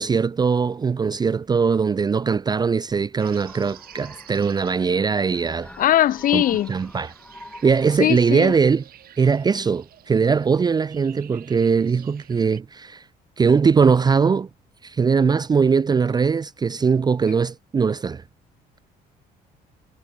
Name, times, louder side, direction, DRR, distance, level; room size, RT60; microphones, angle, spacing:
voice 1, 0.0-5.7 6.3-7.1 7.6-8.8 9.2-13.0 13.4-14.5 14.8-18.2, right 5 dB, 25° right, 0.6 m, -20 dB
sound 1, 3.2-12.6, right 12 dB, 60° right, 3.3 m, -49 dB
sound 2, 3.3-8.6, left 1 dB, 5° left, 4.5 m, -46 dB
voice 2, 5.8-6.7 8.0-8.5, left 12 dB, 55° left, 0.8 m, -20 dB
cardioid pair, 110°, 17 cm